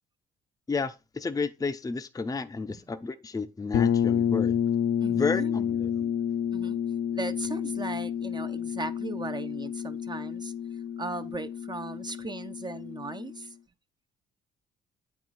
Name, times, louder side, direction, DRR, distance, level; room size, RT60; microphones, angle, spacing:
voice 1, 0.7-4.6 5.1-6.1, left 4 dB, 20° left, 0.6 m, -32 dB
sound 1, 3.7-13.4, left 8 dB, 60° left, 0.6 m, -29 dB
voice 2, 5.0-5.6 6.5-6.8 7.1-10.5 11.0-13.5, right 3 dB, 20° right, 0.6 m, -37 dB
8.5 x 4.7 x 4.0 m
supercardioid pair, 70°, 19 cm